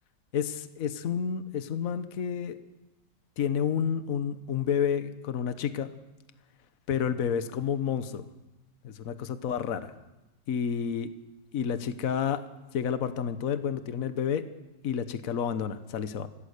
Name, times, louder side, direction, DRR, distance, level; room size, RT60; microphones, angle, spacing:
voice 1, 0.3-2.6 3.4-5.9 6.9-8.2 8.8-9.9 10.5-11.1 11.5-12.4 12.7-14.4 14.8-16.3, left 7 dB, 55° left, 11 dB, 1.4 m, -30 dB
25.0 x 17.0 x 6.6 m, 1.0 s
omnidirectional pair, 1.9 m